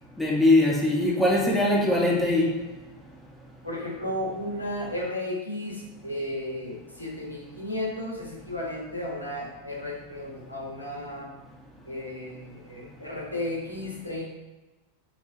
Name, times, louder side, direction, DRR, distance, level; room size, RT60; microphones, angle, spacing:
voice 1, 0.2-2.5, left 1 dB, 5° left, -5 dB, 2.3 m, -21 dB
voice 2, 3.6-11.3 11.9-14.2, left 1 dB, 85° left, -3 dB, 1.9 m, -34 dB
10.0 x 3.8 x 4.3 m, 1.1 s
figure-of-eight pair, 90°, 0 cm